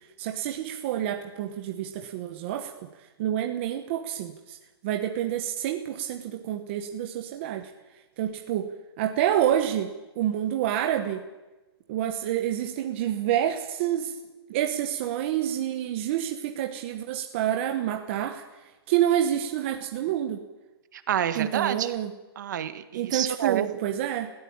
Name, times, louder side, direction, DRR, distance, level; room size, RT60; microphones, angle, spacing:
voice 1, 0.2-2.9 3.2-4.6 4.8-7.7 8.2-8.7 9.0-9.9 10.2-11.2 11.9-14.1 14.5-18.4 18.9-20.4 21.3-22.1 22.9-24.3, right 11 dB, 30° right, 4 dB, 1.2 m, -28 dB
voice 2, 20.9-21.9 22.3-23.6, right 10 dB, 45° right, 10 dB, 1.6 m, -28 dB
20.5 x 15.5 x 8.8 m, 1.1 s
hypercardioid pair, 175°, 13 cm